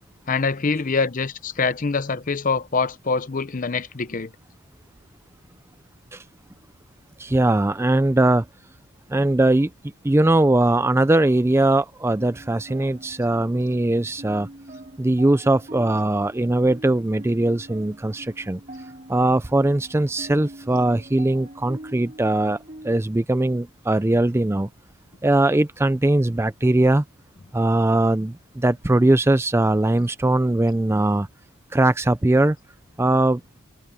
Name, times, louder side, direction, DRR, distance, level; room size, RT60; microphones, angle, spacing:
voice 1, 0.3-4.3, left 4 dB, 35° left, 0.6 m, -24 dB
voice 2, 7.2-8.5 9.1-9.7 10.0-14.5 15.0-18.6 19.1-22.6 22.8-24.7 25.2-27.0 27.5-31.3 31.7-32.6 33.0-33.4, right 1 dB, 10° right, 0.4 m, -20 dB
sound 1, 12.1-23.0, right 1 dB, 35° right, 3.8 m, -43 dB
head